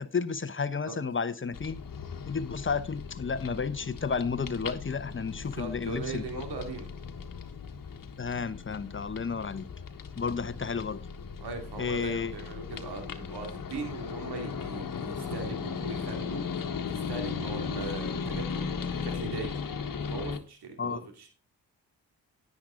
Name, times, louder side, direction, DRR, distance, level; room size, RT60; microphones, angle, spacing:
voice 1, 0.0-1.8 2.3-6.4 8.2-9.7 10.2-11.0 11.8-12.3 20.8-21.0, left 5 dB, 30° left, 1.0 m, -32 dB
sound 1, 1.5-20.4, left 6 dB, 50° left, 1.4 m, -37 dB
voice 2, 5.5-6.9 11.4-16.5 16.9-18.7 19.0-19.5 20.0-21.3, right 3 dB, 70° right, 2.7 m, -39 dB
10.0 x 10.0 x 3.8 m
cardioid pair, 60°, 41 cm